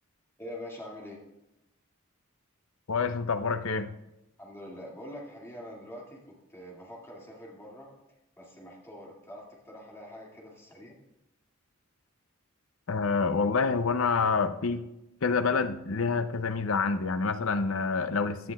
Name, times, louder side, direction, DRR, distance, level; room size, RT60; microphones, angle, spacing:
voice 1, 0.4-1.2 4.4-7.9 8.4-11.0, left 1 dB, 10° left, -3 dB, 2.2 m, -44 dB
voice 2, 2.9-3.9 12.9-14.9 15.2-18.5, left 4 dB, 65° left, 11 dB, 0.6 m, -27 dB
16.5 x 9.6 x 2.3 m, 0.93 s
head